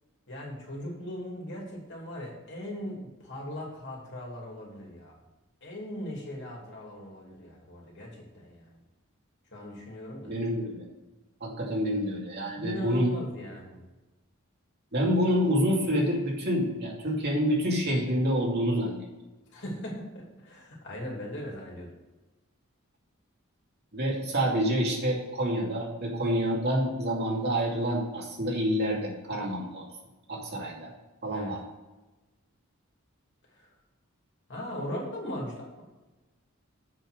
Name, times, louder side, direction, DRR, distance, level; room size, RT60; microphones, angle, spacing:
voice 1, 0.3-5.2 5.6-8.8 9.5-10.3 12.5-13.8 19.5-21.9 31.3-31.5 33.5-33.7 34.5-35.8, equal, 55° left, -2 dB, 2.8 m, -39 dB
voice 2, 10.2-10.8 11.4-13.1 14.9-19.0 23.9-29.8 30.3-30.9 31.2-31.6, equal, 50° right, -2 dB, 2.5 m, -27 dB
7.6 x 5.8 x 6.3 m, 1.1 s
head